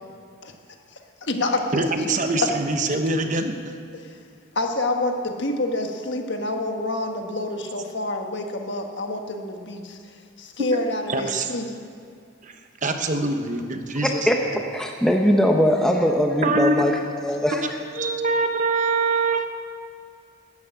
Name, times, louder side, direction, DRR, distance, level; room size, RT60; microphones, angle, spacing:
voice 1, 0.9-1.9 3.9-4.2 4.5-11.7, left 2 dB, 55° left, 4 dB, 1.4 m, -28 dB
voice 2, 1.7-3.6 11.1-11.5 12.8-14.2 16.4-16.7 17.5-19.5, right 3 dB, 35° right, 6 dB, 1.0 m, -24 dB
voice 3, 14.0-14.4 14.7-17.8, equal, 5° left, 2 dB, 0.7 m, -21 dB
13.0 x 10.5 x 9.0 m, 2.3 s
head